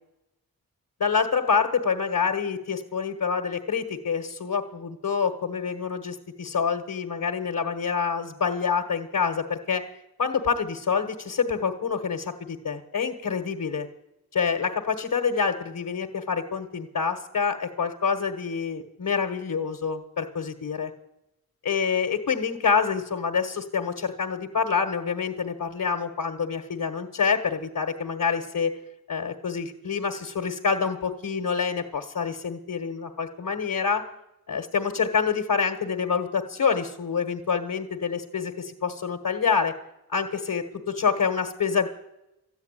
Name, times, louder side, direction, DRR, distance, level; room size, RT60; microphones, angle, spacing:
voice 1, 1.0-9.8 10.2-13.9 14.3-20.9 21.6-28.7 29.1-34.0 34.5-39.7 40.1-41.9, left 6 dB, 65° left, 4 dB, 1.4 m, -27 dB
13.0 x 9.3 x 9.0 m, 0.89 s
cardioid pair, 50°, 35 cm